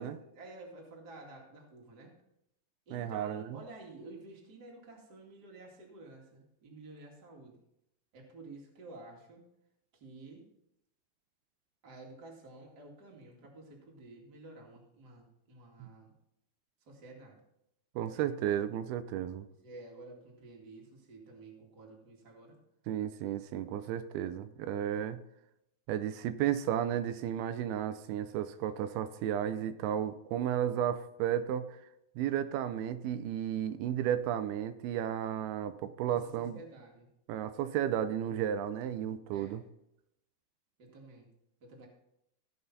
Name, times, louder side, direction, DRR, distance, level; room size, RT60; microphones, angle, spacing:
voice 1, 0.0-2.1 2.9-7.6 8.1-9.4 9.9-10.5 11.8-16.1 16.9-17.4 18.1-18.4 19.6-22.6 36.0-37.1 39.3-39.7 40.8-41.3 41.6-41.9, right 2 dB, 35° right, -1 dB, 2.1 m, -51 dB
voice 2, 2.9-3.6 15.8-15.9 18.0-19.5 22.9-25.2 25.9-31.8 32.2-36.6 37.3-39.6, right 10 dB, 85° right, 11 dB, 2.5 m, -33 dB
16.5 x 5.9 x 4.1 m, 0.82 s
omnidirectional pair, 4.4 m